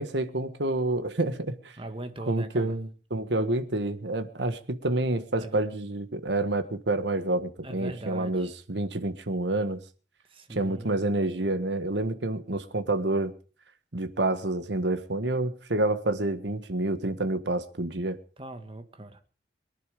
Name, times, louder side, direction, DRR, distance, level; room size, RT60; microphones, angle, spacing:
voice 1, 0.0-1.7 2.3-9.8 10.5-13.3 13.9-18.2, right 2 dB, 70° right, 1.5 m, -28 dB
voice 2, 1.8-2.7 5.4-5.6 7.6-8.5 10.3-11.0 18.4-19.2, right 2 dB, 30° right, 1.9 m, -40 dB
22.5 x 11.0 x 5.1 m
head